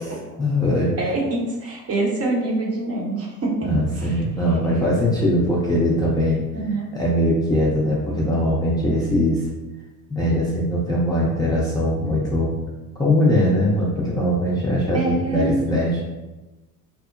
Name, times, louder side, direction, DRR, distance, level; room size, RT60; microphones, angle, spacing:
voice 1, 0.4-0.9 3.6-6.4 6.9-9.4 10.1-12.5 13.0-16.0, left 1 dB, 10° left, -7 dB, 0.5 m, -21 dB
voice 2, 1.0-3.7 4.0-4.1 4.6-5.1 6.5-6.9 14.9-15.6, right 2 dB, 30° right, -2 dB, 0.8 m, -25 dB
2.8 x 2.0 x 2.5 m, 1.1 s
hypercardioid pair, 70°, 45 cm